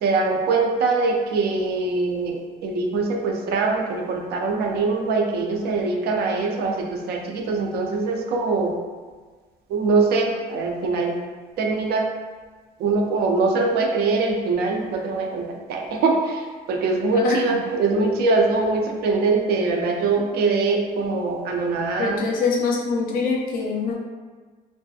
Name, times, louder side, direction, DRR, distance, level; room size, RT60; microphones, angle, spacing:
voice 1, 0.0-8.7 9.7-11.2 11.6-12.1 12.8-22.2, right 3 dB, 70° right, 2 dB, 0.4 m, -23 dB
voice 2, 22.0-23.9, left 4 dB, 55° left, -1 dB, 0.5 m, -24 dB
2.5 x 2.4 x 2.3 m, 1.4 s
cardioid pair, 110°, 17 cm